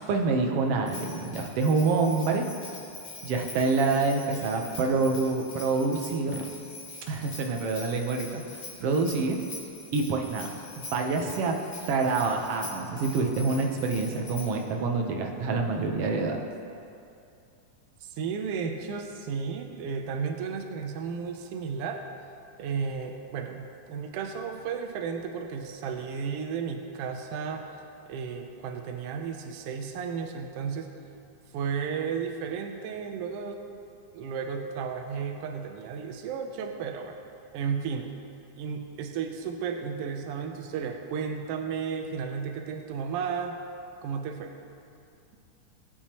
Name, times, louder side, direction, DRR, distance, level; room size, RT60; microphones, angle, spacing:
voice 1, 0.1-2.5 3.2-6.5 7.1-8.4 8.8-9.4 9.9-10.5 10.7-11.6 11.9-16.4, right 4 dB, 65° right, 2 dB, 1.6 m, -26 dB
Bell, 0.9-14.7, left 3 dB, 45° left, 1.7 m, -44 dB
voice 2, 18.0-22.0 22.6-27.6 28.1-30.9 31.5-33.6 34.1-37.2 37.5-38.1 38.6-43.6 44.0-44.5, right 6 dB, 90° right, 4 dB, 1.3 m, -33 dB
19.0 x 9.2 x 3.0 m, 2.6 s
omnidirectional pair, 3.6 m